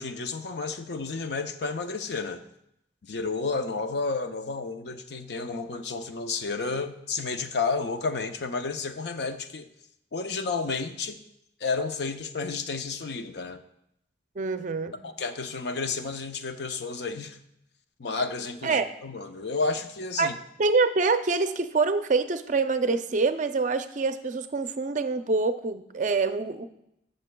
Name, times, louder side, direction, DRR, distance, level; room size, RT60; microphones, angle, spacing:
voice 1, 0.0-2.4 3.0-9.7 10.1-11.2 11.6-13.6 15.0-17.4 18.0-20.4, left 4 dB, 65° left, 8 dB, 0.6 m, -31 dB
voice 2, 14.4-14.9 18.6-18.9 20.2-20.3 20.6-26.7, right 4 dB, 45° right, 9 dB, 0.5 m, -25 dB
16.0 x 6.6 x 2.2 m, 0.79 s
head